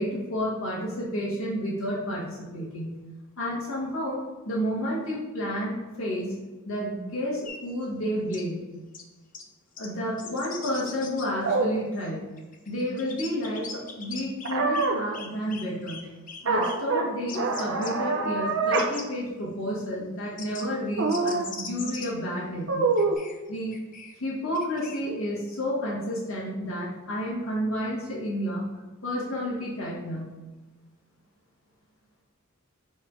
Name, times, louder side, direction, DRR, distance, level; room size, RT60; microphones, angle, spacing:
voice 1, 0.0-3.0 3.4-4.2 4.4-6.3 6.7-8.6 9.8-12.2 12.7-16.1 16.4-22.9 23.5-23.8 24.2-28.7 29.0-30.3, equal, 90° left, -5 dB, 1.8 m, -31 dB
sound 1, 7.5-7.6 8.3-8.4 8.9-9.0 9.3-9.4 9.8-9.9 10.2-11.3 12.0-12.1 12.4-14.9 15.1-16.0 16.3-16.8 17.3-17.9 18.5-19.1 20.4-20.6 21.1-22.1 23.0-24.2 24.5-25.0, left 5 dB, 40° left, 0.8 m, -40 dB
sound 2, 11.4-11.7 14.4-15.0 16.4-17.0 17.3-18.9 19.3-19.4 21.0-21.5 22.7-23.1, right 3 dB, 65° right, 0.8 m, -25 dB
6.2 x 3.5 x 4.9 m, 1.2 s
head